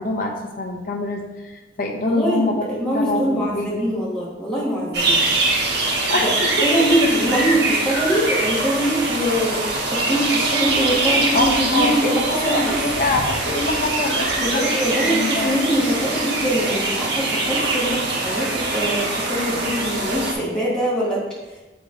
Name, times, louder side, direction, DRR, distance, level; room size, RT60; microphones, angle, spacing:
voice 1, 0.0-2.6 2.9-3.8 6.0-6.7 11.3-11.4 11.7-14.6 15.1-15.6, left 2 dB, 45° left, 1 dB, 0.8 m, -25 dB
voice 2, 2.0-5.3 6.1-6.3 6.6-12.7 14.4-21.2, equal, 5° left, -7 dB, 1.7 m, -23 dB
sound 1, 4.9-20.3, right 2 dB, 55° right, 1.1 m, -23 dB
6.8 x 3.0 x 4.9 m, 1.1 s
head